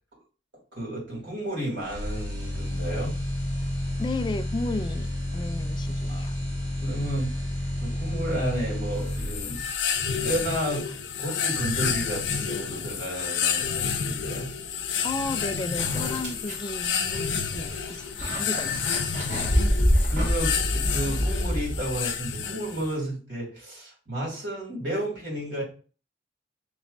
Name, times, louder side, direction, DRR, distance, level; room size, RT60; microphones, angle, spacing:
voice 1, 0.7-3.1 6.1-6.3 6.8-7.3 7.8-9.7 10.2-10.9 11.2-14.5 18.5-18.6 20.1-25.6, right 1 dB, 80° right, -3 dB, 2.5 m, -32 dB
sound 1, 1.8-9.8, left 1 dB, 25° right, 1.7 m, -31 dB
voice 2, 4.0-5.1 5.3-6.4 15.0-18.1 18.4-19.1, left 2 dB, 25° left, 10 dB, 0.3 m, -33 dB
sound 2, 9.1-22.9, left 7 dB, 80° left, 0.6 m, -30 dB
sound 3, 15.8-22.1, equal, 40° right, 1.6 m, -27 dB
6.0 x 3.1 x 2.5 m, 0.37 s
head